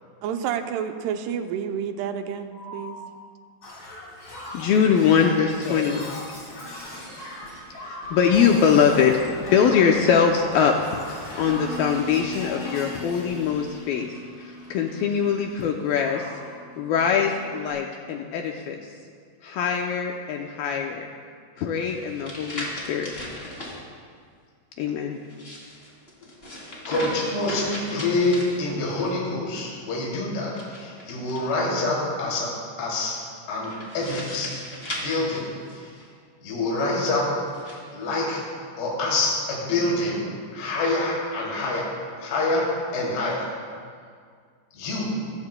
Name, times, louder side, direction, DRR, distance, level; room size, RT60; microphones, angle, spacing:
voice 1, 0.2-3.0, right 8 dB, 80° right, 6 dB, 2.6 m, -29 dB
voice 2, 2.5-2.9 5.4-5.8 26.9-32.5 32.8-33.2 33.5-34.5 34.9-36.0 36.4-37.3 37.9-38.4 38.8-41.9 42.2-43.5 44.7-45.2, left 2 dB, 65° left, -5 dB, 4.7 m, -26 dB
Shatter, 3.6-15.7 15.9-16.5 17.6-17.7, left 1 dB, 30° left, 4.0 m, -39 dB
voice 3, 4.5-6.0 7.8-9.2 9.5-10.7 11.1-14.1 14.7-16.2 16.8-18.8 19.4-21.1 21.6-23.1 24.8-25.2, left 7 dB, 80° left, 2 dB, 2.2 m, -22 dB
Bass guitar, 11.4-17.7, left 1 dB, 45° right, 4.7 m, -41 dB
sound 1, 21.8-23.8 25.2-29.1 30.5-31.8 33.6-36.0 36.8-37.8, left 1 dB, 15° left, 2.6 m, -37 dB
26.0 x 14.5 x 2.2 m, 2.1 s
omnidirectional pair, 5.0 m